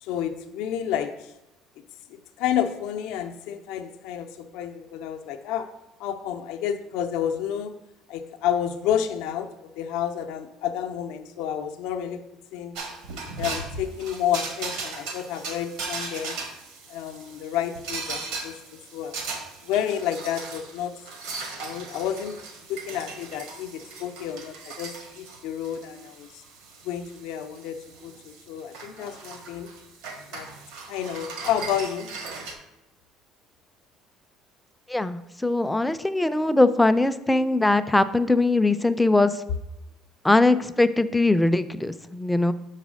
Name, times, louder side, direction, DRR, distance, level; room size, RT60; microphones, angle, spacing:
voice 1, 0.0-1.3 2.1-5.7 6.0-7.7 8.1-9.5 9.8-12.2 12.5-12.8 13.4-16.4 16.9-18.6 18.9-19.1 19.6-20.9 21.6-22.4 22.7-26.4 26.8-29.7 30.3-30.5 30.9-32.1, left 9 dB, 80° left, 6 dB, 0.5 m, -30 dB
sound 1, 12.7-32.5, right 4 dB, 90° right, 1.4 m, -38 dB
voice 2, 34.9-39.3 40.2-42.5, left 2 dB, 5° left, 12 dB, 0.3 m, -21 dB
6.1 x 4.1 x 6.2 m, 0.96 s
cardioid pair, 140°, 0 cm